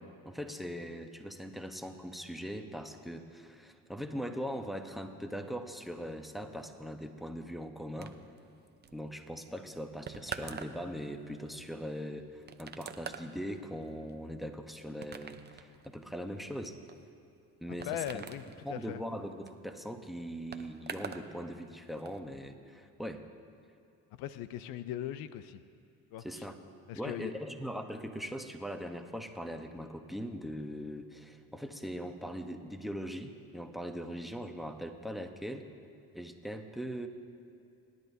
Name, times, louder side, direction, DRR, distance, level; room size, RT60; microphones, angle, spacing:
voice 1, 0.0-8.2 8.9-16.8 17.6-18.2 18.6-23.3 26.2-26.6 27.0-35.7 36.1-37.1, equal, ahead, 6 dB, 0.9 m, -40 dB
sound 1, 8.0-21.3 21.6-22.2, right 6 dB, 30° right, 0.7 m, -47 dB
voice 2, 17.7-18.4 18.7-19.0 24.2-25.6 26.1-26.5 26.9-27.3, left 12 dB, 80° left, 13 dB, 0.6 m, -39 dB
25.5 x 10.5 x 2.7 m, 2.6 s
cardioid pair, 90°, 35 cm